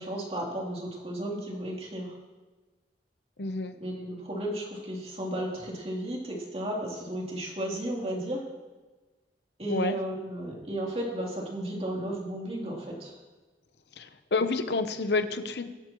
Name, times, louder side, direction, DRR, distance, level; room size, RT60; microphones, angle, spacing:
voice 1, 0.0-2.1 3.8-8.4 9.6-13.1, right 1 dB, 35° right, -3 dB, 3.3 m, -34 dB
voice 2, 3.4-3.8 9.7-10.0 14.0-15.7, left 3 dB, 70° left, 9 dB, 0.9 m, -29 dB
23.0 x 11.5 x 3.1 m, 1.3 s
head